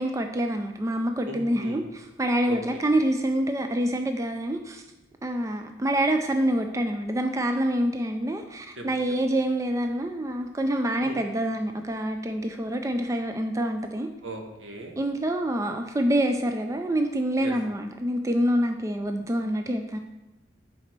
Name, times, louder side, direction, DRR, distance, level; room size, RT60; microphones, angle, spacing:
voice 1, 0.0-4.8 5.2-14.1 15.0-20.0, right 1 dB, 15° right, 5 dB, 0.3 m, -26 dB
voice 2, 1.2-1.9 2.5-2.6 8.8-8.9 11.0-11.2 14.2-14.9 17.4-17.5, right 2 dB, 70° right, 2 dB, 1.4 m, -38 dB
10.5 x 4.2 x 4.5 m, 1.0 s
head